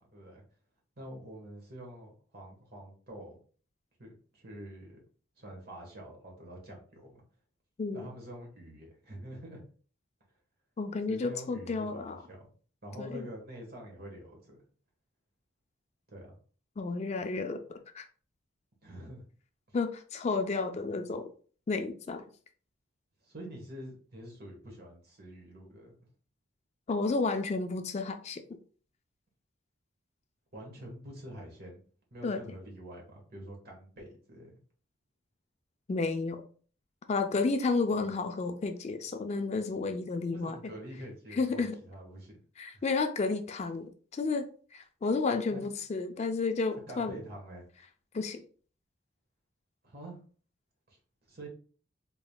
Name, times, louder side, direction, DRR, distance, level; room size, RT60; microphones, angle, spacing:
voice 1, 0.1-0.4 1.0-3.3 4.0-5.0 5.4-7.2 7.9-9.6 11.1-12.4 12.8-14.6 16.1-16.4 18.8-19.2 19.7-19.8 23.2-25.9 30.5-31.8 32.1-34.5 40.3-42.4 42.7-42.8 45.4-45.6 46.9-47.7 49.8-50.2 50.9-51.0 51.3-51.5, right 1 dB, 55° right, 0 dB, 1.4 m, -46 dB
voice 2, 10.8-12.2 13.0-13.2 16.8-18.1 19.7-21.3 21.7-22.2 26.9-28.4 32.2-32.4 35.9-36.4 37.1-40.6 41.3-41.8 42.6-44.5 44.7-47.2 48.1-48.4, left 3 dB, 35° left, 7 dB, 0.3 m, -31 dB
3.9 x 3.5 x 2.3 m, 0.42 s
head